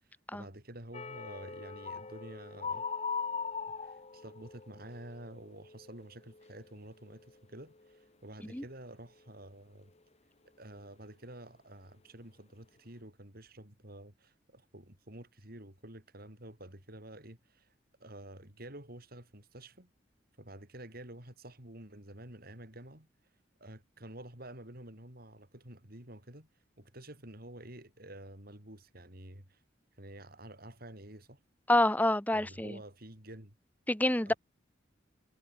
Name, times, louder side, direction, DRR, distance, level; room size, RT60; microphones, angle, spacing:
voice 1, 0.3-2.9 3.8-9.9 10.6-17.7 18.0-19.9 20.4-23.1 23.6-26.5 26.8-29.6 30.0-31.4 32.3-33.6 34.3-34.4, right 1 dB, 55° right, 7.3 m, -49 dB
sound 1, 0.9-6.7 7.0-7.4 7.8-8.0, left 5 dB, 35° left, 1.4 m, -41 dB
voice 2, 31.7-32.8 33.9-34.3, left 1 dB, 10° left, 1.7 m, -27 dB
head